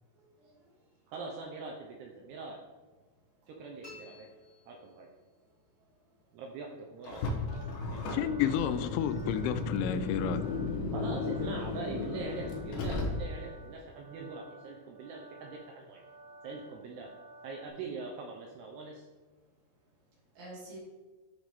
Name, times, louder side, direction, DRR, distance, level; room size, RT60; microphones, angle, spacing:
voice 1, 0.1-0.7 4.3-4.4 7.1-7.2 7.6-7.7 9.0-9.1 9.5-9.7 20.4-20.8, right 1 dB, 55° right, 4.3 m, -50 dB
voice 2, 1.1-2.6 3.5-4.3 4.7-5.1 6.3-7.3 7.9-8.7 10.9-16.0 16.4-17.1 17.4-19.1, right 4 dB, 75° right, 2.5 m, -43 dB
sound 1, 3.8-5.4, left 1 dB, 40° left, 1.2 m, -53 dB
Car, 7.0-13.6, left 3 dB, 65° left, 2.5 m, -35 dB
sound 2, 7.5-17.7, right 2 dB, 10° right, 1.1 m, -54 dB
voice 3, 8.1-10.5, left 9 dB, 90° left, 3.0 m, -31 dB
11.5 x 4.8 x 3.6 m
omnidirectional pair, 5.3 m